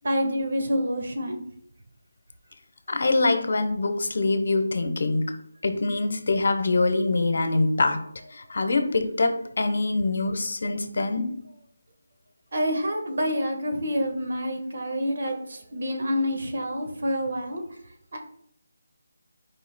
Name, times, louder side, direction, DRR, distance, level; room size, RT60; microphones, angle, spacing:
voice 1, 0.0-1.4 12.5-17.6 18.1-18.2, equal, 60° right, 4 dB, 1.4 m, -27 dB
voice 2, 2.9-5.3 5.6-8.0 8.3-11.3, left 3 dB, 65° left, 8 dB, 0.9 m, -24 dB
10.0 x 4.9 x 2.2 m, 0.67 s
figure-of-eight pair, 165°, 0 cm